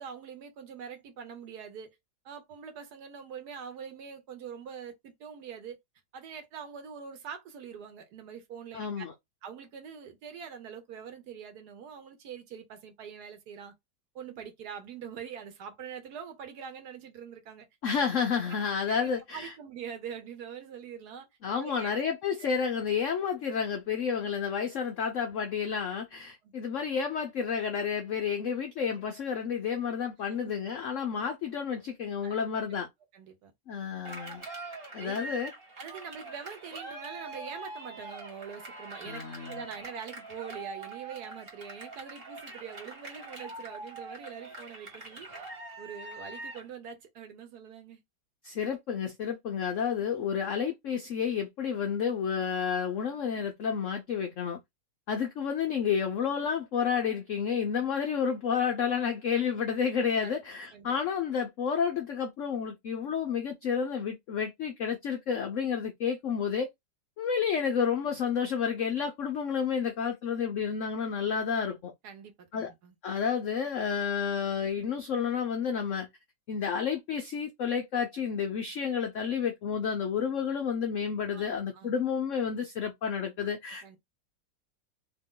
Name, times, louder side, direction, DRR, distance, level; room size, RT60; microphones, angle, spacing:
voice 1, 0.0-2.0 2.2-5.8 6.1-9.0 9.4-13.7 14.1-17.7 18.4-18.6 18.9-21.3 21.5-21.9 22.4-22.5 26.4-26.5 30.2-30.4 32.2-32.3 33.1-33.5 35.0-35.4 35.8-45.3 45.8-48.0 60.2-60.3 60.7-61.0 72.0-72.9 81.3-81.9 83.8-84.0, right 7 dB, 65° right, 1.2 m, -44 dB
voice 2, 8.7-9.1 17.8-19.5 21.4-32.9 33.7-34.4 34.9-35.5 39.0-39.6 48.4-54.6 55.1-66.7 67.2-71.9 72.5-72.7 73.0-76.1 76.5-84.0, left 7 dB, 80° left, 0.6 m, -30 dB
Cheering, 34.1-46.7, right 2 dB, 35° right, 1.3 m, -43 dB
2.9 x 2.7 x 3.6 m
omnidirectional pair, 2.0 m